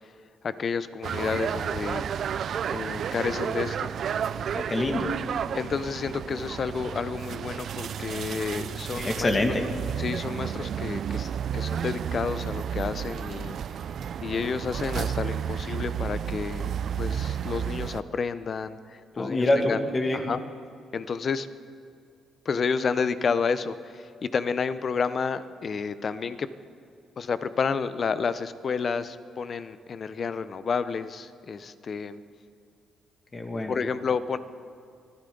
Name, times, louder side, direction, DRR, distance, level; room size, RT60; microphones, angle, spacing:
voice 1, 0.4-2.0 2.7-3.9 5.5-9.3 10.0-13.6 14.2-19.8 20.1-20.4 20.9-21.5 22.5-26.5 27.2-32.2 33.7-34.4, left 5 dB, 45° left, 13 dB, 0.7 m, -30 dB
sound 1, 1.0-18.0, right 8 dB, 60° right, 0.4 m, -32 dB
voice 2, 4.5-5.1 9.0-9.6 19.2-20.2 33.3-33.8, left 1 dB, 30° left, 3 dB, 2.2 m, -26 dB
24.0 x 14.5 x 3.9 m, 2.3 s
cardioid pair, 90°, 0 cm